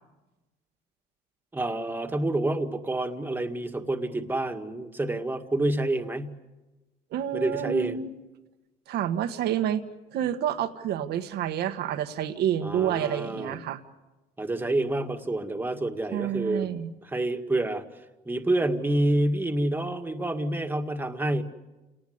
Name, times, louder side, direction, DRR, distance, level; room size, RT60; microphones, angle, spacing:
voice 1, 1.5-6.4 7.3-8.0 12.6-13.6 14.4-16.7 17.0-17.8 18.3-21.4, right 1 dB, 10° right, 5 dB, 2.0 m, -28 dB
voice 2, 7.1-8.1 8.9-9.8 10.1-13.8 16.1-16.9, right 10 dB, 75° right, 8 dB, 1.5 m, -29 dB
28.5 x 19.0 x 8.1 m, 1.1 s
cardioid pair, 110°, 17 cm